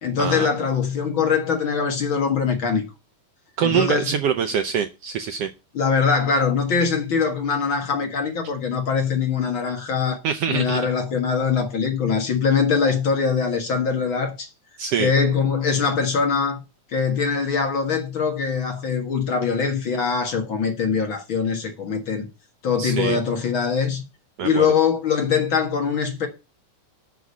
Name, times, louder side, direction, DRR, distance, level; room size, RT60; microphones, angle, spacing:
voice 1, 0.0-2.8 3.6-4.1 5.7-10.2 10.5-14.5 15.0-16.6 16.9-22.3 22.6-24.0 24.4-26.3, left 6 dB, 45° left, 2.1 m, -22 dB
voice 2, 3.6-5.5 10.2-10.8 14.8-15.1 22.8-23.2 24.4-24.7, right 8 dB, 70° right, 1.5 m, -24 dB
8.2 x 6.2 x 8.2 m
omnidirectional pair, 3.4 m